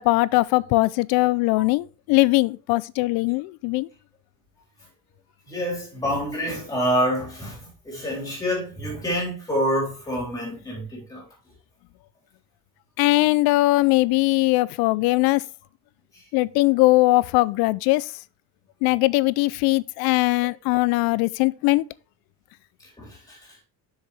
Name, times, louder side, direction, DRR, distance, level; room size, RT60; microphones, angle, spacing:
voice 1, 0.0-3.9 13.0-15.4 16.3-18.1 18.8-21.9, left 20 dB, 85° left, 0.5 m, -20 dB
voice 2, 5.5-11.2 16.1-16.2 23.0-23.6, equal, 10° left, 3.6 m, -27 dB
7.4 x 6.5 x 3.2 m
cardioid pair, 175°, 36 cm